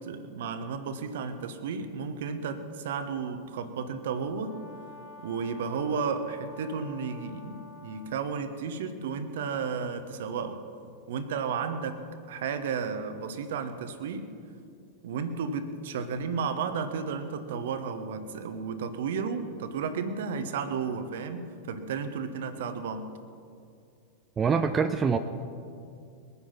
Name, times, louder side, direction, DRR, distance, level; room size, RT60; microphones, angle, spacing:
voice 1, 0.0-4.6 5.2-10.6 11.1-12.0 12.3-14.3 15.0-23.1, right 5 dB, 55° right, 10 dB, 1.1 m, -33 dB
Brass instrument, 4.3-8.2, left 3 dB, 65° left, 3.6 m, -49 dB
voice 2, 24.4-25.2, right 6 dB, 20° right, 8 dB, 0.6 m, -24 dB
21.5 x 9.7 x 5.8 m, 2.4 s
figure-of-eight pair, 90°, 0 cm